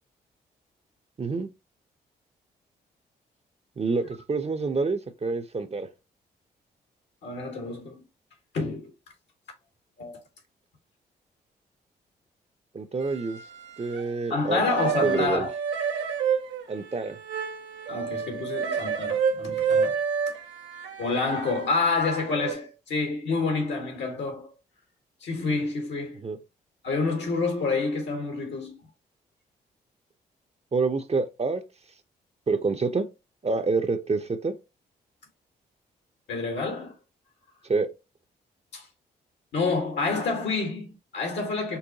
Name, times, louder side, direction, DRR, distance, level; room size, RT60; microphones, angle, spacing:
voice 1, 1.2-1.5 3.8-5.9 12.7-13.4 13.8-14.6 15.0-15.5 16.7-17.2 26.2-26.4 30.7-31.6 32.5-33.1 33.4-34.5 37.7-37.9, right 4 dB, 35° right, 0.7 m, -27 dB
voice 2, 7.2-8.0 8.5-8.9 10.0-10.2 14.3-15.5 17.9-20.0 21.0-24.5 25.2-26.2 26.8-28.8 36.3-36.9 38.7-38.9 39.5-41.8, left 3 dB, 70° left, 1.6 m, -28 dB
sound 1, 13.0-14.2 14.4-22.5, right 6 dB, 75° right, 0.7 m, -30 dB
5.4 x 2.2 x 2.8 m
supercardioid pair, 50°, 19 cm